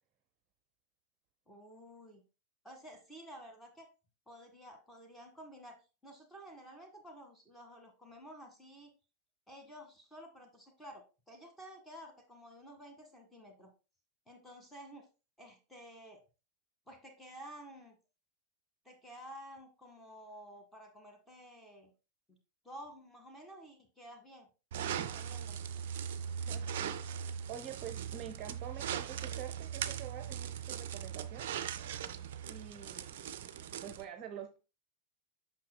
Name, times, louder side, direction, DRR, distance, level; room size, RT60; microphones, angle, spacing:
voice 1, 1.5-2.2 2.6-3.9 4.3-8.9 9.5-13.7 14.3-15.1 15.4-16.2 16.9-18.0 18.8-21.9 22.3-22.4 22.6-24.5 24.8-25.6, equal, 5° left, 1.8 m, -52 dB
sound 1, 24.7-34.0, right 8 dB, 55° right, 0.5 m, -40 dB
voice 2, 26.5-31.5 32.5-33.2 33.8-34.6, right 9 dB, 35° right, 0.8 m, -47 dB
8.4 x 6.0 x 2.2 m
figure-of-eight pair, 90°, 0 cm